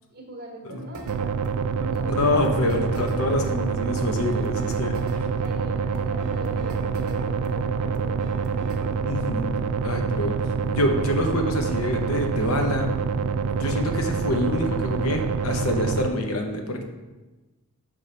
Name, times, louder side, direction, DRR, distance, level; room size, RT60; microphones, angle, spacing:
voice 1, 0.1-1.4 1.6-2.3 3.2-3.3 5.2-8.5, right 1 dB, 45° right, 0 dB, 1.2 m, -40 dB
sound 1, 0.9-9.0, right 2 dB, 70° right, 0.8 m, -42 dB
sound 2, 1.1-16.1, right 5 dB, 90° right, 0.3 m, -26 dB
voice 2, 2.1-5.0 9.1-10.4 10.7-12.9 13.5-16.8, left 1 dB, 70° left, 4 dB, 0.8 m, -26 dB
6.7 x 3.5 x 4.2 m, 1.2 s
head